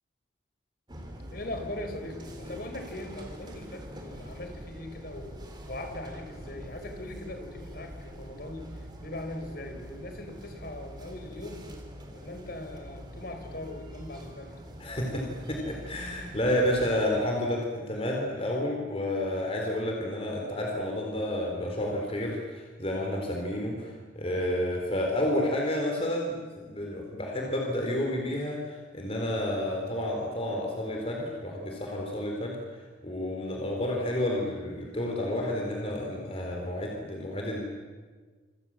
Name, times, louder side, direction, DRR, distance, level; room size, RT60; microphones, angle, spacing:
sound 1, 0.9-17.0, equal, 25° right, 3.8 m, -44 dB
voice 1, 1.3-5.3 5.7-11.7 12.1-14.6, left 1 dB, 55° left, 5 dB, 4.6 m, -40 dB
voice 2, 14.8-37.6, left 1 dB, 30° left, 0 dB, 4.0 m, -30 dB
27.0 x 26.5 x 7.6 m, 1.5 s
head